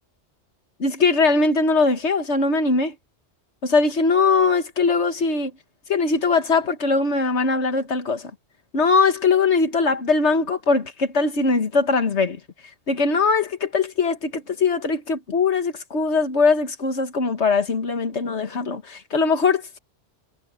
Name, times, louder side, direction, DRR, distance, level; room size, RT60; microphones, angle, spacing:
voice 1, 0.8-3.0 3.6-5.5 5.9-8.3 8.7-12.4 12.9-19.8, left 4 dB, 75° left, 1.9 m, -21 dB
omnidirectional pair, 1.2 m